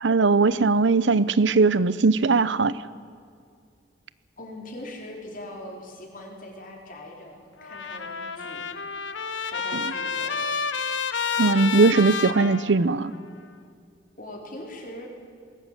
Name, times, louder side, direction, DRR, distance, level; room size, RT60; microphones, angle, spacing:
voice 1, 0.0-2.7 11.4-13.1, right 3 dB, 75° right, 17 dB, 0.7 m, -19 dB
voice 2, 4.4-8.7 9.4-10.5 14.2-15.1, left 1 dB, 50° left, 0 dB, 4.4 m, -41 dB
Trumpet, 7.6-13.2, left 5 dB, 90° left, 1.3 m, -30 dB
21.0 x 18.0 x 9.2 m, 2.3 s
head